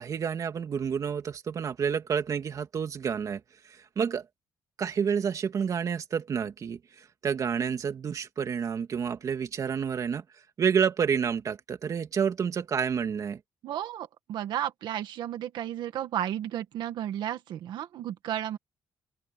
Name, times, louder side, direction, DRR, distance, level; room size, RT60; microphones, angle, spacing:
voice 1, 0.0-3.4 3.7-4.2 4.8-6.8 7.2-10.2 10.6-13.4, right 7 dB, 45° right, 2.5 m, -29 dB
voice 2, 13.6-18.6, right 11 dB, 80° right, 1.7 m, -33 dB
open air
cardioid pair, 125°, 8 cm